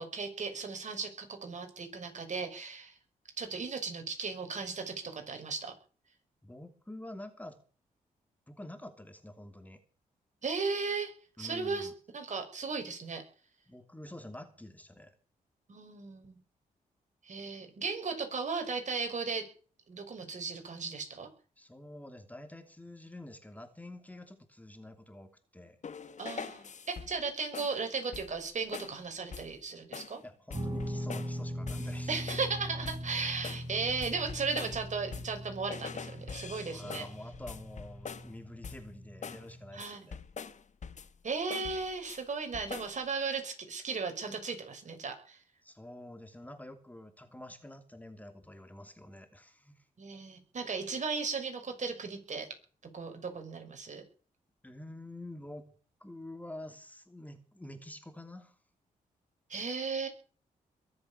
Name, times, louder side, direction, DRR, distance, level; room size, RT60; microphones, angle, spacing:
voice 1, 0.0-3.0 3.4-5.7 10.4-11.1 11.4-13.2 15.7-16.4 17.2-19.5 19.9-21.3 26.2-30.2 32.1-37.0 39.7-40.1 41.2-45.4 50.0-52.5 52.9-54.0 59.5-60.1, right 4 dB, 55° right, 5 dB, 6.0 m, -36 dB
voice 2, 6.4-7.6 8.5-9.8 11.4-11.9 13.7-15.1 21.6-25.8 30.1-32.1 36.7-40.2 45.6-49.8 54.6-55.7 56.0-58.6, left 1 dB, 10° left, 7 dB, 2.9 m, -47 dB
sound 1, 25.8-27.2 27.5-27.8 28.1-28.5 28.7-29.0 29.3-29.6 29.9-30.2 30.5-31.4 31.7-32.6 32.8-33.1 33.4-35.4 35.7-38.4 38.6-38.9 39.2-39.5 39.8-41.2 41.5-42.2 42.5-43.0, left 6 dB, 55° left, 1.6 m, -44 dB
Guitar, 30.5-39.8, equal, 30° right, 7.0 m, -41 dB
22.5 x 8.1 x 7.1 m, 0.41 s
cardioid pair, 65°, 15 cm